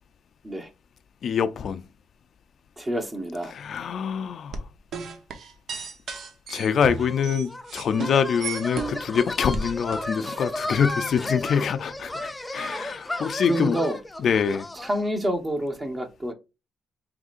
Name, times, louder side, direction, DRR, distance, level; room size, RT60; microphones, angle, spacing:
voice 1, 1.2-1.8 3.5-4.6 6.5-13.8 14.2-14.7, left 7 dB, 60° left, 0.4 m, -25 dB
voice 2, 2.8-3.5 10.2-10.4 13.0-14.0 14.7-16.3, right 1 dB, 20° right, 1.0 m, -28 dB
sound 1, 4.5-9.2 9.5-10.1, right 5 dB, 65° right, 0.9 m, -34 dB
sound 2, 7.0-15.1, left 2 dB, 15° left, 0.6 m, -34 dB
4.8 x 3.2 x 2.5 m
cardioid pair, 90°, 0 cm